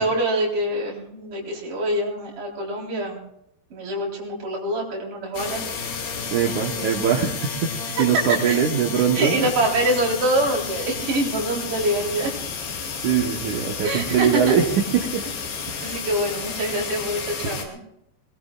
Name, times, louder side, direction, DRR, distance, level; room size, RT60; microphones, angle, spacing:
voice 1, 0.0-3.2 3.7-6.1 6.4-6.9 7.9-8.7 9.1-12.3 13.8-14.6 15.8-17.8, right 1 dB, 45° right, -2 dB, 5.3 m, -25 dB
sound 1, 5.3-17.6, left 6 dB, 85° left, 5.0 m, -31 dB
voice 2, 6.3-9.4 13.0-14.6 14.9-15.2 15.7-16.0, right 8 dB, 70° right, 2 dB, 1.9 m, -22 dB
22.5 x 20.5 x 2.4 m, 0.77 s
omnidirectional pair, 5.2 m